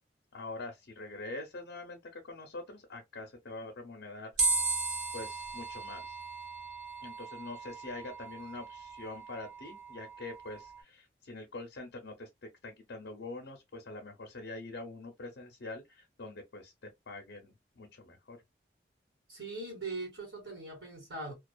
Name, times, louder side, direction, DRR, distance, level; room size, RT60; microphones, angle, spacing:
voice 1, 0.3-4.3 5.1-6.2 7.0-18.4, left 2 dB, 80° left, 0.6 m, -44 dB
sound 1, 4.4-10.8, right 3 dB, 45° right, 1.3 m, -36 dB
voice 2, 19.3-21.3, right 2 dB, 80° right, 1.5 m, -40 dB
2.4 x 2.3 x 2.2 m
head